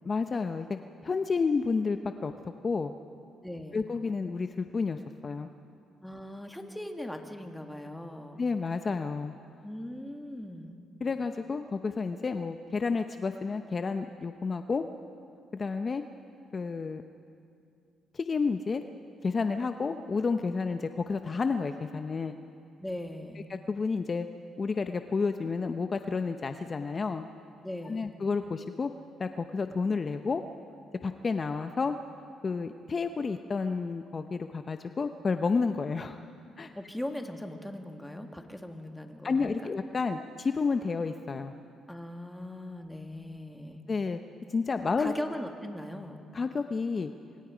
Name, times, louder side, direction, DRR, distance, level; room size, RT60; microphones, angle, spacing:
voice 1, 0.0-0.8 1.0-2.3 2.6-2.9 3.7-5.5 8.4-9.3 11.0-14.9 15.5-16.0 16.5-17.0 18.1-18.8 19.2-22.4 23.5-24.3 24.6-27.2 27.8-28.9 29.2-30.4 31.0-31.9 32.4-36.2 36.6-36.7 39.2-41.5 43.9-44.2 44.5-45.1 46.3-47.1, left 4 dB, 35° left, 8 dB, 0.8 m, -30 dB
voice 2, 3.4-3.8 6.0-8.4 9.6-10.8 22.8-23.5 27.6-28.1 36.7-39.7 41.9-43.8 45.0-46.2, left 1 dB, 5° left, 4 dB, 2.0 m, -39 dB
28.0 x 24.5 x 5.1 m, 2.5 s
cardioid pair, 90°, 0 cm